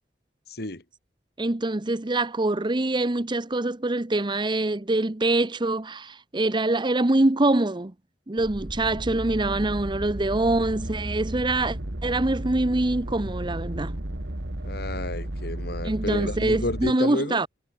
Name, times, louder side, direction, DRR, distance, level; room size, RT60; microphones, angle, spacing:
voice 1, 0.5-0.8 14.6-17.4, left 1 dB, 65° left, 3.6 m, -31 dB
voice 2, 1.4-7.9 8.3-14.0 15.8-17.5, right 2 dB, 25° right, 0.9 m, -24 dB
sound 1, 8.4-16.9, right 1 dB, 75° right, 2.3 m, -33 dB
head